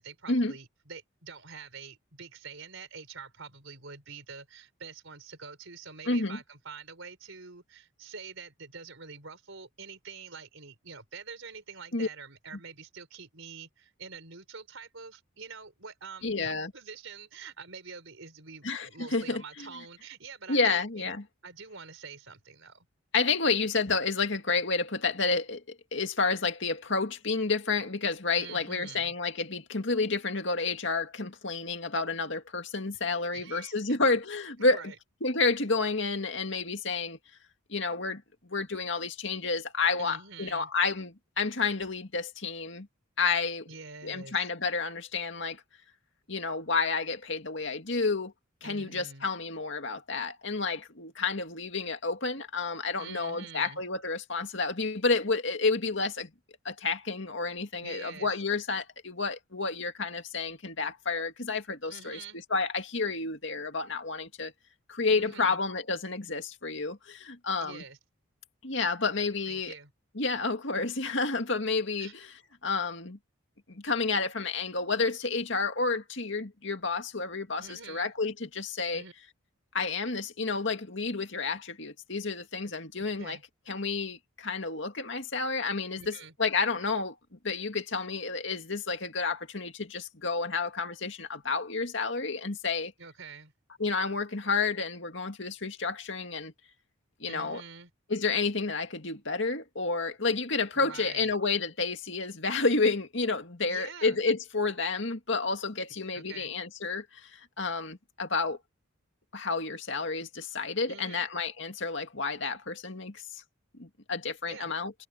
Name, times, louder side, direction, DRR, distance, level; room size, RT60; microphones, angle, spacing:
voice 1, 0.0-21.0 21.4-22.9 28.4-29.1 33.3-33.7 34.0-34.2 34.6-35.0 40.0-40.7 43.7-44.4 48.6-49.3 53.0-53.8 57.8-58.3 61.9-62.4 65.1-65.6 67.6-68.0 69.5-69.9 72.0-72.1 77.6-78.1 78.9-79.1 83.0-83.4 86.0-86.3 93.0-93.5 97.2-97.9 100.7-101.3 103.7-104.2 106.1-106.5 110.9-111.3 114.5-114.7, right 5 dB, 70° right, 4.4 m, -46 dB
voice 2, 6.1-6.4 11.9-12.1 16.2-16.7 18.6-19.4 20.5-21.2 23.1-34.8 35.2-37.2 37.7-42.9 43.2-43.7 44.0-45.6 46.3-48.3 48.6-56.3 56.6-62.2 62.5-64.5 64.9-67.8 68.6-69.7 70.2-72.3 72.6-73.2 73.7-79.0 79.7-83.4 83.7-87.2 87.4-92.9 93.8-96.5 97.2-97.6 98.1-108.6 109.3-113.4 113.8-114.9, left 4 dB, 60° left, 2.3 m, -30 dB
head